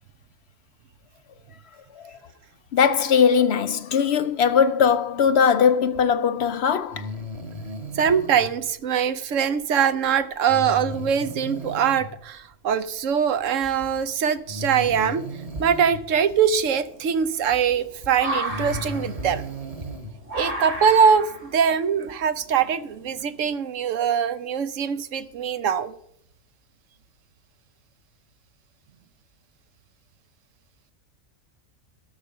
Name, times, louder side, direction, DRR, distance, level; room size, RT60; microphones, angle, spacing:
voice 1, 2.7-7.1, left 7 dB, 60° left, 0.8 m, -20 dB
Breathing, 6.9-8.5 10.5-12.1 13.5-13.6 14.5-16.0 17.6-17.7 18.3-20.1, left 1 dB, 30° right, 1.4 m, -35 dB
voice 2, 7.9-15.2 15.6-19.4 20.3-25.9, right 7 dB, 70° right, 1.1 m, -22 dB
sound 1, 13.6-14.2 14.9-15.0 15.5-23.5, right 1 dB, 55° right, 3.7 m, -34 dB
13.0 x 4.9 x 7.6 m
omnidirectional pair, 1.4 m